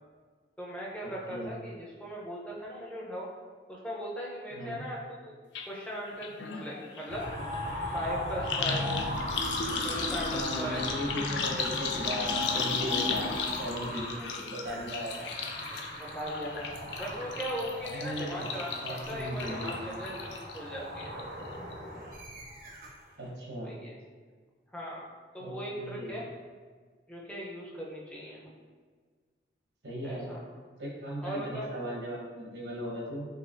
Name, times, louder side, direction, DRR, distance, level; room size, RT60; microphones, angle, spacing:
voice 1, 0.6-3.3 3.7-5.4 5.7-7.3 7.9-9.1 9.8-10.8 13.2-13.4 16.0-21.1 23.6-23.9 24.7-25.1 25.3-26.3 27.1-28.5 30.0-30.4 31.2-31.7, equal, 5° left, -5 dB, 0.6 m, -38 dB
sound 1, 5.5-5.7 5.9-20.6 21.0-21.5 21.7-21.8, left 4 dB, 80° left, 0.4 m, -35 dB
sound 2, 7.1-23.0, left 1 dB, 50° right, 0.6 m, -39 dB
voice 2, 10.3-15.3 18.0-18.5 18.8-19.8 23.2-23.7 25.4-26.1 29.8-30.3 30.8-33.3, equal, 85° right, -3 dB, 0.9 m, -37 dB
3.9 x 3.1 x 2.5 m, 1.5 s
head